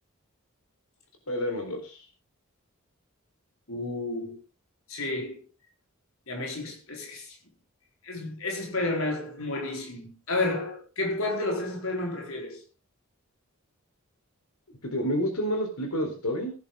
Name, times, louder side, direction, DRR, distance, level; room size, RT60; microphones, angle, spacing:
voice 1, 1.3-2.0 14.8-16.5, equal, 90° left, 4.2 m, -29 dB
voice 2, 3.7-4.4 4.9-5.4 6.3-7.3 8.0-12.6, left 2 dB, 75° left, 4.3 m, -31 dB
17.0 x 10.5 x 3.8 m
head